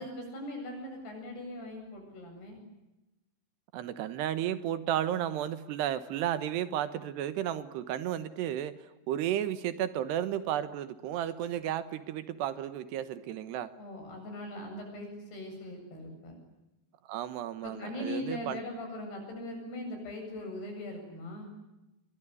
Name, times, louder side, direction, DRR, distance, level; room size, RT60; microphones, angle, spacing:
voice 1, 0.0-2.6 13.8-16.4 17.6-21.5, left 1 dB, 55° left, 3 dB, 9.9 m, -40 dB
voice 2, 3.7-13.7 17.1-18.6, right 11 dB, 70° right, 13 dB, 3.0 m, -33 dB
26.0 x 23.0 x 9.9 m, 0.96 s
omnidirectional pair, 5.5 m